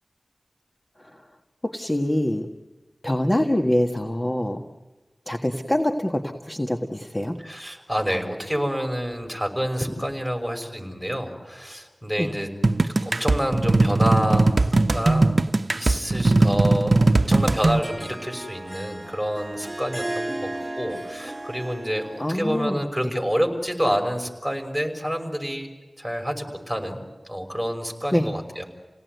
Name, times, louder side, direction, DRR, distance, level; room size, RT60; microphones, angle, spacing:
voice 1, 1.6-2.5 3.0-4.6 5.3-7.4 12.2-12.3 22.2-22.8 28.1-28.3, left 1 dB, 25° left, 4 dB, 1.6 m, -24 dB
voice 2, 7.4-12.5 13.0-14.5 14.9-15.3 15.7-25.7 26.0-28.7, equal, ahead, 3 dB, 6.0 m, -28 dB
sound 1, 12.6-17.8, right 2 dB, 60° right, 0.8 m, -19 dB
Harp, 17.2-22.5, right 1 dB, 30° right, 2.1 m, -35 dB
29.5 x 18.0 x 9.4 m, 1.3 s
wide cardioid pair, 55°, 0 cm